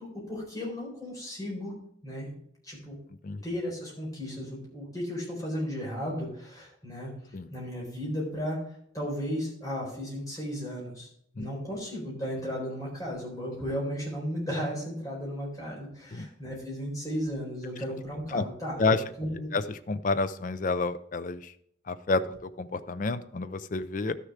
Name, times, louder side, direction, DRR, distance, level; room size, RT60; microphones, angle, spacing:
voice 1, 0.0-1.7 2.0-2.4 2.6-3.0 3.4-7.1 7.5-8.6 8.9-11.1 11.4-19.5, equal, 20° left, -3 dB, 4.1 m, -35 dB
voice 2, 19.5-21.5 21.9-24.2, left 3 dB, 45° left, 13 dB, 0.4 m, -29 dB
12.0 x 6.6 x 4.9 m, 0.68 s
head